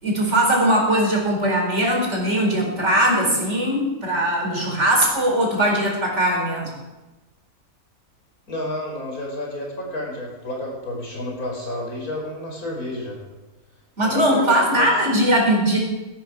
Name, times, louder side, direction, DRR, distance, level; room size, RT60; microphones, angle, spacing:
voice 1, 0.0-6.7 14.0-15.8, right 1 dB, 50° right, -1 dB, 5.1 m, -20 dB
voice 2, 8.5-13.2 14.0-15.2, left 1 dB, 75° left, -1 dB, 5.5 m, -30 dB
19.0 x 11.5 x 6.2 m, 1.1 s
omnidirectional pair, 1.6 m